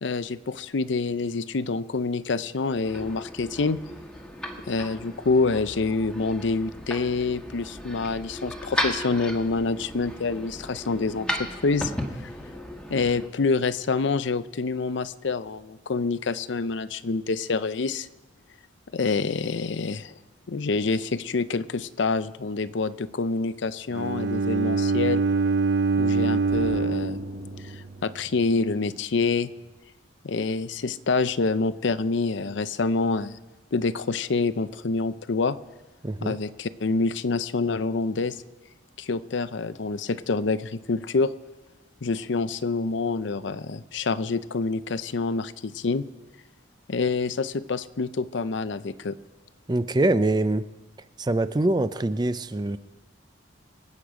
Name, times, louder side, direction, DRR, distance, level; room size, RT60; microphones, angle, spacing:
voice 1, 0.0-3.8 4.7-11.9 12.9-18.1 18.9-20.1 20.5-25.2 26.0-27.2 27.6-29.5 30.2-33.4 33.7-35.6 36.2-38.4 39.0-41.3 42.0-46.0 46.9-49.2, left 4 dB, 70° left, 14 dB, 0.6 m, -27 dB
sound 1, 2.7-13.3, left 1 dB, 5° left, 1.3 m, -35 dB
Bowed string instrument, 23.9-28.0, right 4 dB, 70° right, 0.6 m, -25 dB
Explosion, 26.5-29.1, equal, 85° right, 5.3 m, -43 dB
voice 2, 36.0-36.4 49.7-50.6 51.2-52.8, right 2 dB, 20° right, 13 dB, 0.4 m, -24 dB
25.0 x 8.5 x 4.9 m, 1.1 s
head